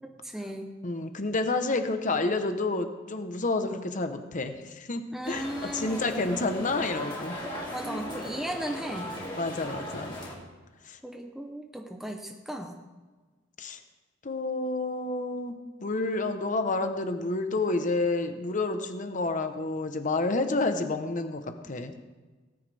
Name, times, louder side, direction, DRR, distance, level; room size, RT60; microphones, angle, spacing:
voice 1, 0.0-0.7 5.1-6.2 7.7-9.1 11.0-12.8, right 1 dB, ahead, 2 dB, 0.8 m, -36 dB
voice 2, 0.8-7.4 9.3-10.1 10.8-11.0 13.6-13.8 14.2-21.9, left 2 dB, 40° left, 8 dB, 1.0 m, -29 dB
sound 1, 5.2-10.3, equal, 25° left, 3.1 m, -38 dB
18.0 x 9.5 x 3.5 m, 1.3 s
head